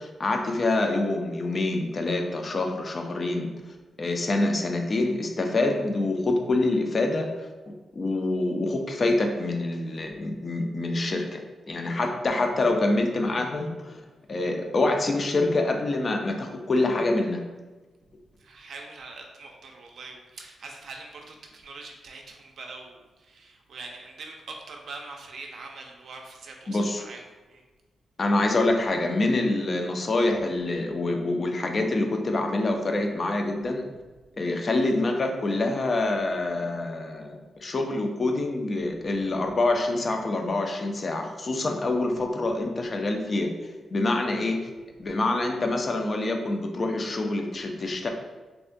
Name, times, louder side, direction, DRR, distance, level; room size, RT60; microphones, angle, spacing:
voice 1, 0.0-3.5 4.0-7.3 7.9-11.4 11.7-14.0 14.3-17.4 26.7-27.0 28.2-33.9 34.4-43.5 43.9-44.6 45.0-48.1, left 2 dB, 35° left, 3 dB, 0.4 m, -26 dB
voice 2, 18.4-27.6 39.0-39.1, right 3 dB, 65° right, 2 dB, 0.4 m, -43 dB
3.4 x 2.1 x 2.5 m, 1.2 s
wide cardioid pair, 130°, 0 cm